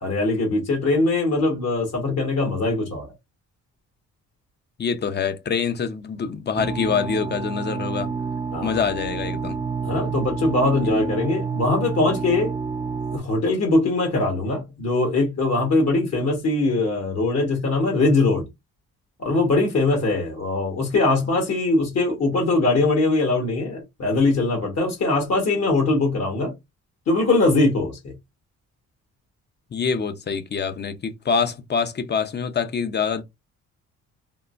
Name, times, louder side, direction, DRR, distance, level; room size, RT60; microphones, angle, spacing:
voice 1, 0.0-3.1 8.5-8.8 9.8-12.5 13.1-18.5 19.2-26.5 27.1-28.1, left 2 dB, 60° left, 1.4 m, -21 dB
voice 2, 4.8-8.1 8.6-9.6 10.8-10.9 29.7-33.2, left 6 dB, 35° left, 0.7 m, -25 dB
sound 1, 6.5-13.2, right 5 dB, 25° right, 0.5 m, -29 dB
3.6 x 2.2 x 2.5 m
cardioid pair, 90°, 30 cm